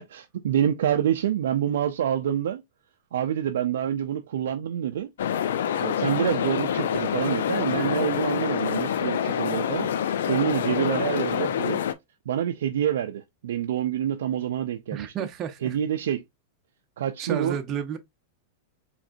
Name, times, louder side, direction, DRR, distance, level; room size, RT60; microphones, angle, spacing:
voice 1, 0.0-2.6 3.1-5.1 5.8-9.9 10.3-11.8 12.3-15.1 15.6-16.2 17.0-17.6, right 10 dB, 80° right, 0.5 m, -27 dB
sound 1, 5.2-11.9, left 9 dB, 80° left, 0.5 m, -26 dB
voice 2, 14.9-15.8 17.2-18.0, right 8 dB, 35° right, 0.7 m, -31 dB
5.0 x 3.3 x 2.6 m
hypercardioid pair, 125°, 0 cm